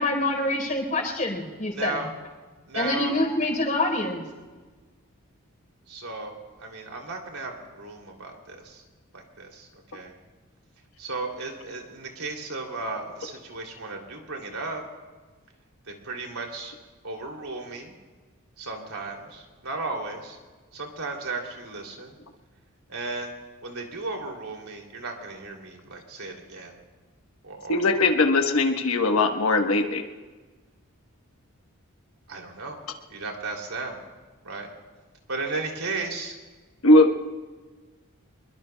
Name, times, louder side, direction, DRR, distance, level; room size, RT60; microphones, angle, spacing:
voice 1, 0.0-2.0 2.7-4.2, left 2 dB, 35° left, 1 dB, 3.9 m, -26 dB
voice 2, 1.7-2.1 2.7-3.2 5.9-8.8 9.1-10.1 11.0-14.8 16.0-16.7 17.0-17.9 18.6-20.4 20.7-22.1 22.9-23.3 23.6-26.7 27.4-28.1 32.3-32.8 33.1-34.0 34.4-34.7 35.3-36.4, right 3 dB, 80° right, 1 dB, 2.8 m, -35 dB
voice 3, 27.7-30.0 36.8-37.1, left 2 dB, 70° left, 4 dB, 1.1 m, -19 dB
26.0 x 22.0 x 2.2 m, 1.3 s
head